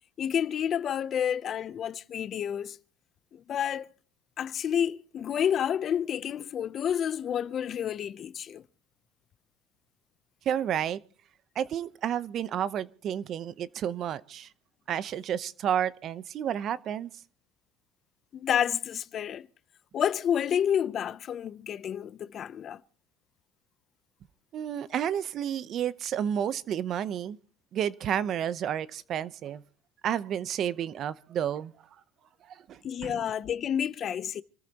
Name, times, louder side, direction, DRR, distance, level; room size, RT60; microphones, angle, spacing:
voice 1, 0.2-2.8 3.3-3.9 4.4-8.6 18.3-19.5 19.9-22.8 32.8-34.4, left 9 dB, 45° left, 0.6 m, -29 dB
voice 2, 10.5-11.0 11.6-14.5 14.9-17.1 24.5-27.4 27.7-29.6 30.0-31.7 32.5-33.2, right 9 dB, 50° right, 0.8 m, -31 dB
27.5 x 14.0 x 2.9 m
supercardioid pair, 110°, 0 cm